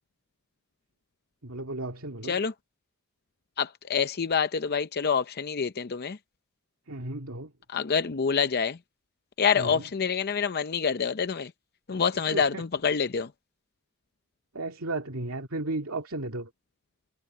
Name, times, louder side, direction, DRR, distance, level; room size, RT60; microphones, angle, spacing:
voice 1, 1.4-2.4 6.9-7.5 9.6-9.9 12.1-12.6 14.5-16.5, right 2 dB, 75° right, 2.3 m, -34 dB
voice 2, 3.6-6.2 7.7-8.8 9.4-11.5 11.9-13.3, left 6 dB, 45° left, 0.6 m, -27 dB
head